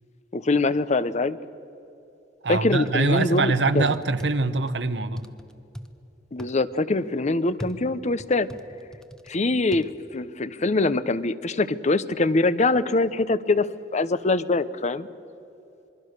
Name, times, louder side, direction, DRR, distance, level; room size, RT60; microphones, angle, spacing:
voice 1, 0.3-1.4 2.5-3.9 6.3-8.5 9.3-13.7 13.9-15.1, left 2 dB, 40° left, 15 dB, 0.7 m, -23 dB
voice 2, 2.4-5.3, right 3 dB, 75° right, 12 dB, 1.0 m, -24 dB
sound 1, 2.9-3.4 3.8-4.7 5.2-5.9 6.4-6.5 7.6-9.3 9.7-9.8, equal, 5° left, 1.0 m, -39 dB
27.0 x 22.0 x 6.6 m, 2.8 s
head